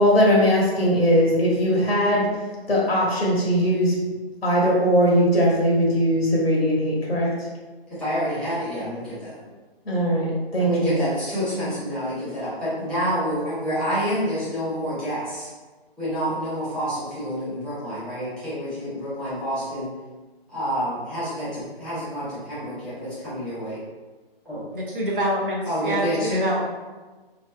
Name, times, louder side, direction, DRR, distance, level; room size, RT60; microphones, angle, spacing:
voice 1, 0.0-2.3 2.7-3.9 4.4-7.3 9.9-11.0, equal, 70° left, -4 dB, 1.3 m, -20 dB
voice 2, 7.9-9.4 10.6-15.5 16.0-19.9 20.5-23.8 24.4-24.7 25.6-26.5, equal, 5° left, -12 dB, 0.8 m, -28 dB
voice 3, 24.7-26.6, equal, 55° right, -2 dB, 1.1 m, -26 dB
4.9 x 2.8 x 2.2 m, 1.3 s
figure-of-eight pair, 140°, 31 cm